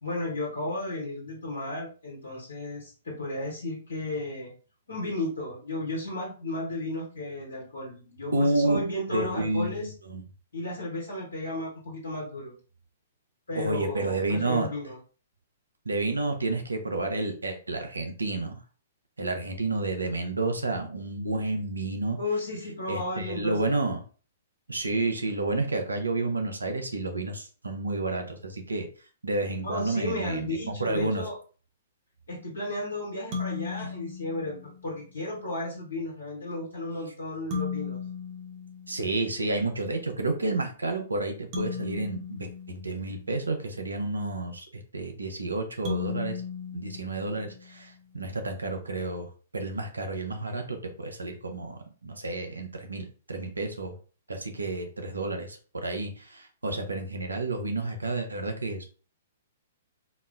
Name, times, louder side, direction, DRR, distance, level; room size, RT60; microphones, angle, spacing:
voice 1, 0.0-4.5 4.9-9.9 10.5-12.6 13.5-15.0 22.2-23.7 29.6-31.3 32.3-38.0, left 2 dB, 80° left, -3 dB, 1.1 m, -34 dB
voice 2, 8.3-8.8 9.1-10.2 13.5-14.7 15.8-18.6 19.2-22.2 22.9-24.0 24.7-28.9 29.2-31.2 33.8-33.9 38.9-46.4 46.7-53.9 54.3-58.8, right 2 dB, 85° right, 4 dB, 0.7 m, -30 dB
sound 1, 33.3-35.0 37.5-39.5 41.5-43.7 45.9-47.9, left 5 dB, 40° right, 0.9 m, -36 dB
4.0 x 2.1 x 2.4 m, 0.37 s
figure-of-eight pair, 115°, 0 cm